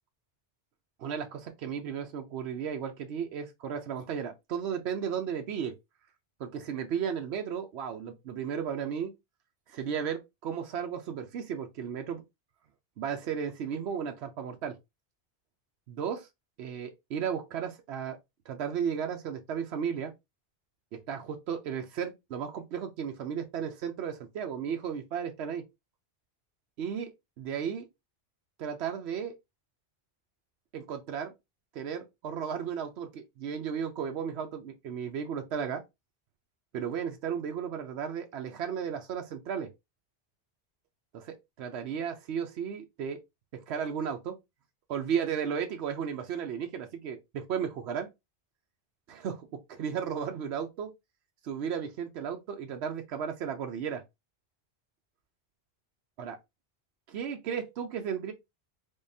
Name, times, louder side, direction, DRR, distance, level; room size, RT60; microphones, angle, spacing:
voice 1, 1.0-5.7 6.4-9.1 9.7-12.2 13.0-14.8 15.9-16.3 16.6-18.2 18.5-20.1 20.9-25.6 26.8-27.1 27.4-27.8 28.6-29.4 30.7-31.3 31.7-35.8 36.7-39.7 41.1-43.2 43.5-44.3 44.9-48.1 49.1-49.4 49.8-50.9 51.4-54.0 56.2-56.4 57.1-58.3, right 7 dB, 80° right, 0.9 m, -34 dB
3.7 x 3.5 x 2.6 m
omnidirectional pair, 1.1 m